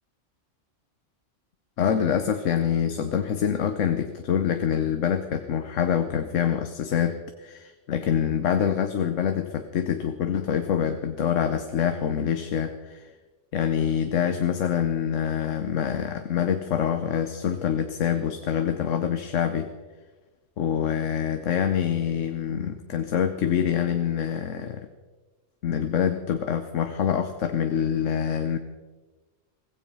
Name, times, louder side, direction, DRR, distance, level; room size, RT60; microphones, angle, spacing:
voice 1, 1.8-13.1 13.5-19.7 20.6-24.9 25.6-28.6, left 8 dB, 90° left, 8 dB, 1.2 m, -25 dB
16.0 x 15.5 x 5.5 m, 1.3 s
omnidirectional pair, 1.3 m